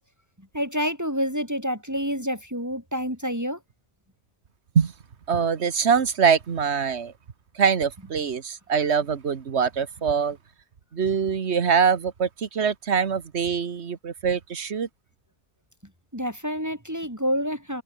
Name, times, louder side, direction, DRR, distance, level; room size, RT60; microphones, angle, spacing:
voice 1, 0.5-3.6 16.1-17.8, equal, 15° right, 8.1 m, -28 dB
voice 2, 5.3-7.1 7.5-10.4 10.9-14.9, right 6 dB, 90° right, 1.6 m, -23 dB
omnidirectional pair, 1.1 m